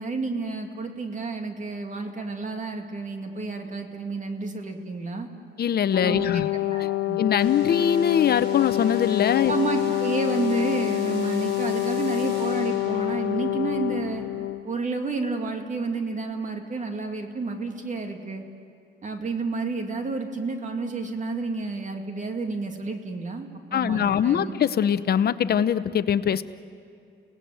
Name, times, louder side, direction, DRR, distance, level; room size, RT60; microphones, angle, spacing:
voice 1, 0.0-5.3 6.0-7.2 9.5-14.2 14.6-18.4 19.0-24.5, right 3 dB, 40° right, 4 dB, 2.5 m, -30 dB
voice 2, 5.6-6.5 7.2-9.5 23.7-26.4, left 8 dB, 50° left, 13 dB, 0.9 m, -22 dB
Brass instrument, 5.9-14.6, left 17 dB, 85° left, 1.1 m, -27 dB
sound 1, 7.4-14.3, right 3 dB, 60° right, 4.6 m, -43 dB
30.0 x 18.5 x 7.8 m, 2.4 s
cardioid pair, 90°, 20 cm